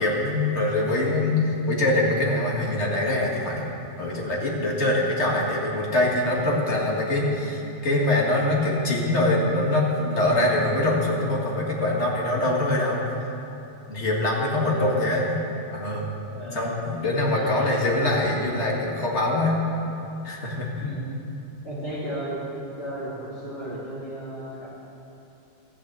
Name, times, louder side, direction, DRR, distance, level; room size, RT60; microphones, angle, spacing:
voice 1, 0.0-3.7 4.0-13.0 13.9-15.4 15.7-16.1 16.5-19.6 20.2-20.9, left 1 dB, 90° left, -3 dB, 2.2 m, -24 dB
voice 2, 14.5-15.0 16.3-16.7 17.3-17.8 20.8-21.1 21.6-22.4 22.8-24.7, right 1 dB, 65° left, -12 dB, 3.8 m, -34 dB
14.0 x 9.9 x 8.2 m, 2.8 s
omnidirectional pair, 1.1 m